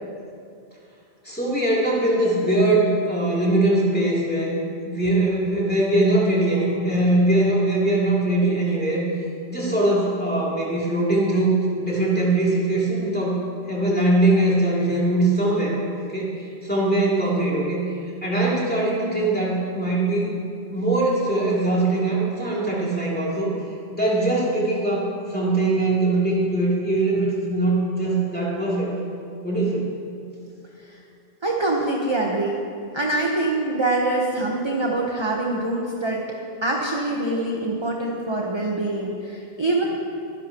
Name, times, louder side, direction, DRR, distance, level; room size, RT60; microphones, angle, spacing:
voice 1, 1.2-4.5 4.8-9.0 9.5-13.4 13.7-17.9 18.2-20.3 20.7-23.5 23.9-28.9 29.4-29.9, right 2 dB, 10° left, -7 dB, 3.0 m, -21 dB
voice 2, 31.4-32.6 32.9-36.2 36.6-39.8, right 2 dB, 25° right, -2 dB, 1.1 m, -24 dB
24.0 x 10.5 x 3.0 m, 2.4 s
omnidirectional pair, 1.1 m